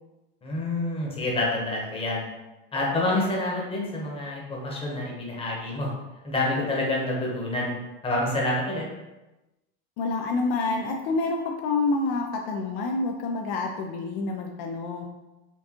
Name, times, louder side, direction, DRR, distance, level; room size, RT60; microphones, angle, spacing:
voice 1, 0.4-2.3 2.7-5.9 6.2-7.8 8.0-8.8, left 2 dB, 20° left, -3 dB, 1.0 m, -27 dB
voice 2, 10.0-15.1, left 3 dB, 65° left, 2 dB, 0.5 m, -28 dB
4.4 x 2.4 x 2.9 m, 1.0 s
supercardioid pair, 130°, 31 cm